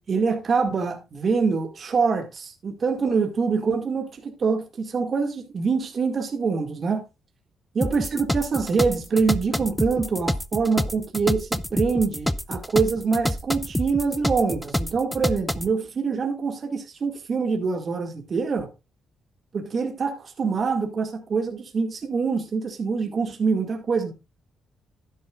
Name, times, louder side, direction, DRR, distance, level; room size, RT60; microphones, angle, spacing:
voice 1, 0.1-7.0 7.7-18.7 19.5-24.1, right 5 dB, 45° right, 2.2 m, -25 dB
sound 1, 7.8-15.7, left 1 dB, 5° left, 0.7 m, -27 dB
11.5 x 10.5 x 2.5 m
cardioid pair, 90°, 0 cm